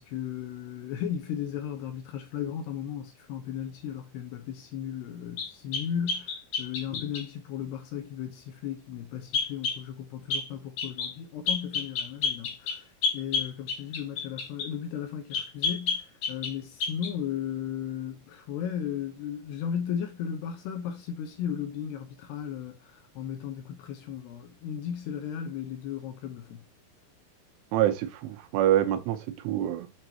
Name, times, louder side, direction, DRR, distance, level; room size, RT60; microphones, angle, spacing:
voice 1, 0.0-26.6, left 9 dB, 75° left, 2.7 m, -35 dB
sound 1, 5.4-7.3 9.3-9.8 10.3-10.5 10.8-11.1 11.5-14.7 15.3-16.6 16.8-17.1, left 5 dB, 60° left, 2.2 m, -30 dB
voice 2, 27.7-29.9, right 12 dB, 85° right, 3.4 m, -26 dB
7.9 x 5.3 x 2.9 m
omnidirectional pair, 5.5 m